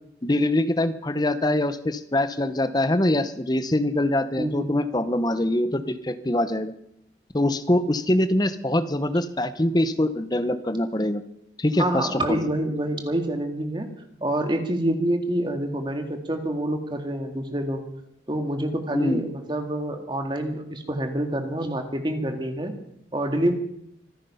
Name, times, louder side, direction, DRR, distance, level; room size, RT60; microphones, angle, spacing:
voice 1, 0.2-6.7 7.3-11.2 11.6-12.4 18.9-19.2, left 1 dB, 20° left, 11 dB, 0.9 m, -24 dB
voice 2, 4.4-4.8 11.8-13.9 14.2-17.8 18.3-22.7 23.1-23.5, right 1 dB, 25° right, 5 dB, 2.0 m, -27 dB
25.5 x 9.8 x 5.6 m, 0.74 s
head